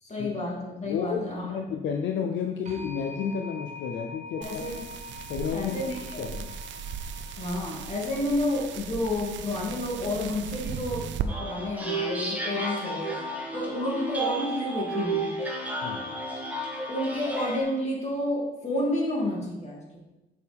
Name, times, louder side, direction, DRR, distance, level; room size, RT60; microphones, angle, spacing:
voice 1, 0.0-1.6 4.4-4.8 5.5-6.2 7.4-13.2 13.5-15.4 16.9-20.0, left 1 dB, 35° left, -3 dB, 2.7 m, -30 dB
voice 2, 0.9-4.7 5.3-5.8 6.2-6.5 15.8-16.1, left 7 dB, 70° left, 4 dB, 0.6 m, -31 dB
sound 1, 2.7-13.3, left 3 dB, 35° right, 1.6 m, -47 dB
sound 2, 4.4-11.3, right 8 dB, 70° right, 0.5 m, -37 dB
sound 3, 11.3-17.6, right 2 dB, 5° right, 1.7 m, -32 dB
6.7 x 6.3 x 3.6 m, 1.0 s
cardioid pair, 90°, 20 cm